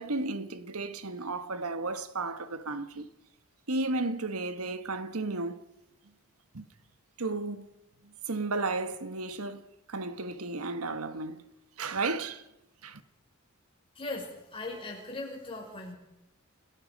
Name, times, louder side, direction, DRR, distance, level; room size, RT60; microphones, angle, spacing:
voice 1, 0.0-3.1 3.7-5.6 6.5-6.6 7.2-7.7 8.0-11.5 11.8-12.4 12.8-13.0, right 3 dB, 80° right, 1.3 m, -33 dB
voice 2, 14.0-15.9, left 2 dB, 25° left, 5.8 m, -39 dB
29.5 x 17.5 x 5.2 m
head